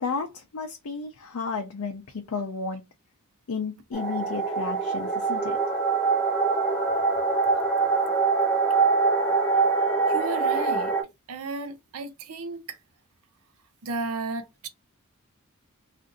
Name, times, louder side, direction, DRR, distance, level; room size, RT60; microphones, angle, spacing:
voice 1, 0.0-2.8 3.5-5.6, left 4 dB, 75° left, 0.5 m, -32 dB
sound 1, 3.9-11.0, right 4 dB, 5° left, 0.8 m, -24 dB
voice 2, 10.1-10.9 11.3-12.8 13.8-14.7, right 3 dB, 70° right, 0.5 m, -34 dB
2.5 x 2.5 x 3.7 m
head